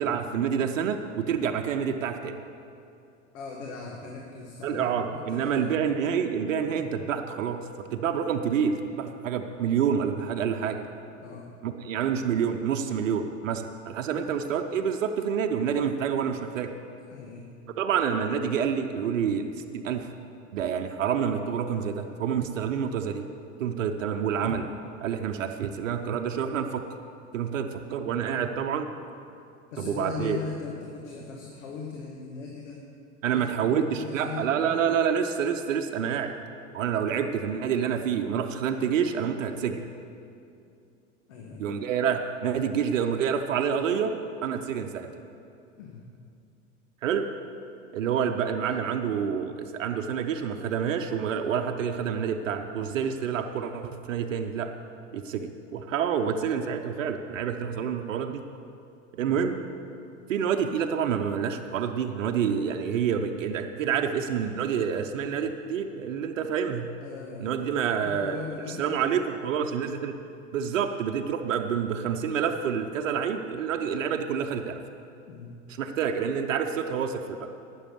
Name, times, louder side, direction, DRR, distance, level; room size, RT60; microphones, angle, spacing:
voice 1, 0.0-2.4 4.6-7.6 7.9-10.8 11.6-16.7 17.8-20.1 20.5-23.2 23.6-24.7 25.0-26.8 27.3-28.9 29.8-30.4 33.2-36.4 36.7-39.8 41.6-44.1 44.4-45.1 47.0-47.3 47.9-54.7 55.1-58.4 59.1-59.6 60.3-66.9 67.4-68.4 68.8-70.2 70.5-74.8 75.8-77.5, right 7 dB, 85° right, 5 dB, 0.8 m, -28 dB
voice 2, 3.3-5.9 11.2-11.5 14.1-14.3 17.1-17.5 29.7-32.8 33.2-34.8 37.0-37.1 41.3-41.8 45.8-46.1 48.1-48.3 59.2-59.4 67.0-67.6 67.9-68.9 75.3-75.6, left 5 dB, 75° left, 0 dB, 1.6 m, -39 dB
12.0 x 8.7 x 6.9 m, 2.6 s
hypercardioid pair, 75°, 38 cm